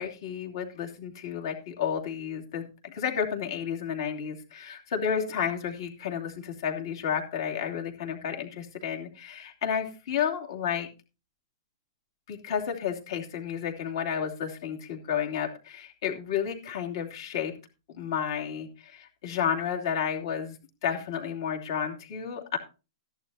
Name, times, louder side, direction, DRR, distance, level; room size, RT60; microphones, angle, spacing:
voice 1, 0.0-10.9 12.3-17.5 17.9-20.6 20.8-22.6, left 8 dB, 55° left, 2 dB, 3.0 m, -31 dB
14.5 x 11.0 x 2.8 m, 0.31 s
hypercardioid pair, 160°, 3 cm